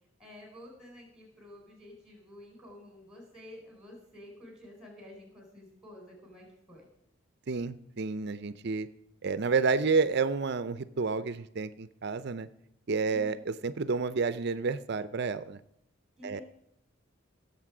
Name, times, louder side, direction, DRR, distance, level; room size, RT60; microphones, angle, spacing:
voice 1, 0.2-6.9 13.0-13.4 16.2-16.4, left 1 dB, 5° right, 0 dB, 4.2 m, -50 dB
voice 2, 7.5-8.9 9.2-12.5 12.9-15.6 16.2-16.4, right 4 dB, 50° right, 14 dB, 0.5 m, -30 dB
17.0 x 7.3 x 4.9 m, 0.78 s
head